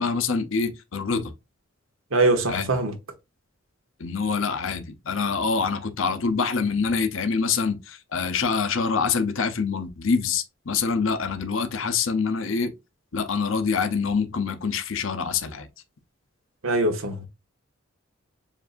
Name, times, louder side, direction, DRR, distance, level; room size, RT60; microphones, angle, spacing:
voice 1, 0.0-1.3 2.5-2.7 4.0-12.7 13.1-15.7, left 5 dB, 70° left, 0.8 m, -25 dB
voice 2, 2.1-2.9 16.6-17.3, right 2 dB, 85° right, 1.2 m, -22 dB
7.2 x 2.7 x 2.5 m
head